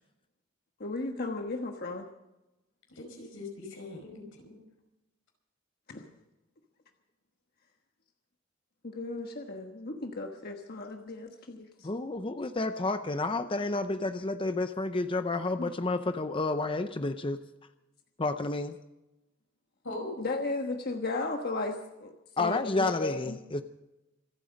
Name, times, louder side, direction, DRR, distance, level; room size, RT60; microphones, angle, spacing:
voice 1, 0.8-2.0 5.9-6.1 8.8-11.9 20.2-23.4, left 3 dB, 50° left, 3 dB, 1.3 m, -35 dB
voice 2, 2.9-4.6 19.8-20.3, left 2 dB, 85° left, 2 dB, 5.2 m, -41 dB
voice 3, 11.8-17.4 18.2-18.8 22.4-23.6, left 2 dB, 25° left, 9 dB, 0.6 m, -30 dB
26.5 x 9.2 x 5.2 m, 0.95 s
head